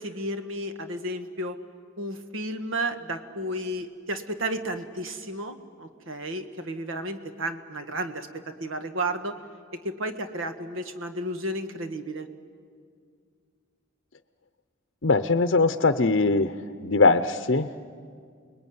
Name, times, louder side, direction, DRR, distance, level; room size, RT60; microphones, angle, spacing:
voice 1, 0.0-1.6 2.0-9.4 9.7-12.3, right 1 dB, 70° right, 8 dB, 1.6 m, -32 dB
voice 2, 15.0-17.7, left 3 dB, 55° left, 9 dB, 0.7 m, -21 dB
29.5 x 21.0 x 9.5 m, 2.1 s
head